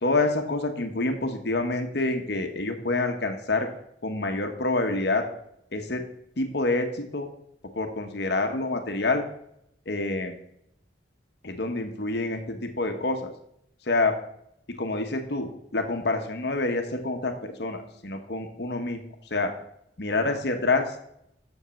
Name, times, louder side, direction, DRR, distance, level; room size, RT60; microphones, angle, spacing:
voice 1, 0.0-3.7 4.0-5.2 5.7-6.0 6.4-7.3 7.8-9.2 9.9-10.4 11.4-13.3 13.9-14.1 14.8-19.0 19.3-19.5 20.0-20.9, left 2 dB, 60° left, 5 dB, 1.1 m, -27 dB
6.5 x 5.4 x 7.0 m, 0.75 s
head